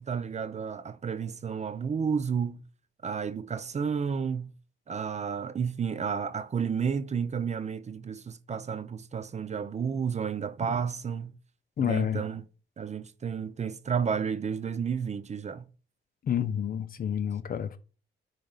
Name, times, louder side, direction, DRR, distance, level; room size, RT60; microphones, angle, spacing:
voice 1, 0.0-2.6 3.0-4.5 4.9-11.3 11.8-12.4 12.8-15.7, right 6 dB, 35° right, 0.6 m, -31 dB
voice 2, 11.8-12.2 16.2-17.8, left 9 dB, 45° left, 0.8 m, -29 dB
10.0 x 3.4 x 4.0 m
cardioid pair, 90°, 20 cm